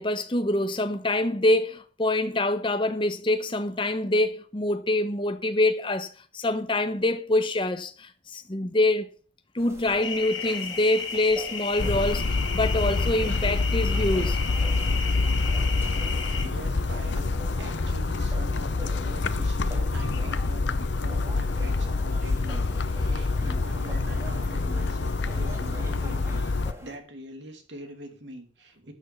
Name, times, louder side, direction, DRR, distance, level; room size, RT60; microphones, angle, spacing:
voice 1, 0.0-9.1 9.5-12.2 12.5-14.4, left 1 dB, 25° left, 1.0 m, -25 dB
sound 1, 9.6-27.0, equal, 15° right, 1.8 m, -45 dB
sound 2, 10.0-16.4, left 6 dB, 85° left, 2.5 m, -34 dB
sound 3, 11.8-26.7, left 3 dB, 65° left, 0.7 m, -26 dB
voice 2, 16.4-17.3 17.6-26.5 26.8-28.9, right 1 dB, 65° right, 2.7 m, -43 dB
12.0 x 6.6 x 7.0 m
head